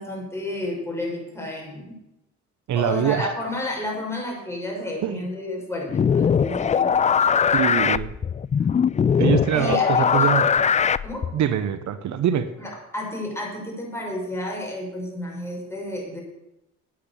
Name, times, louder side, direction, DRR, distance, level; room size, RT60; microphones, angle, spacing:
voice 1, 0.0-2.0 2.8-7.0 9.5-10.3 11.0-11.3 12.6-16.2, left 1 dB, 10° left, -2 dB, 5.8 m, -31 dB
voice 2, 2.7-3.3 5.0-5.2 7.5-8.1 9.2-10.5 11.3-12.5, right 10 dB, 70° right, 11 dB, 0.9 m, -23 dB
sound 1, 5.9-11.4, left 7 dB, 25° left, 0.3 m, -20 dB
9.5 x 9.3 x 8.4 m, 0.90 s
cardioid pair, 90°, 30 cm